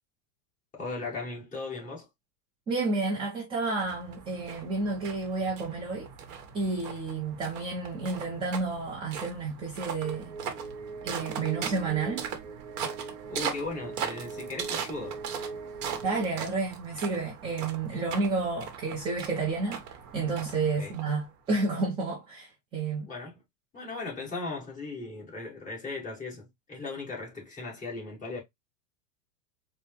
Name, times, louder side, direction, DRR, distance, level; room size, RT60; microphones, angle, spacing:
voice 1, 0.8-2.1 13.3-15.2 20.8-21.0 23.0-23.3 23.7-28.4, left 3 dB, 15° left, 1.5 m, -37 dB
voice 2, 2.7-6.1 6.5-10.3 11.0-12.3 16.0-19.8 20.1-23.1, right 3 dB, 10° right, 0.4 m, -30 dB
sound 1, 3.8-21.5, right 7 dB, 40° right, 0.9 m, -40 dB
sound 2, 10.0-16.3, right 5 dB, 90° right, 1.0 m, -41 dB
4.4 x 2.1 x 3.4 m
supercardioid pair, 145°, 48 cm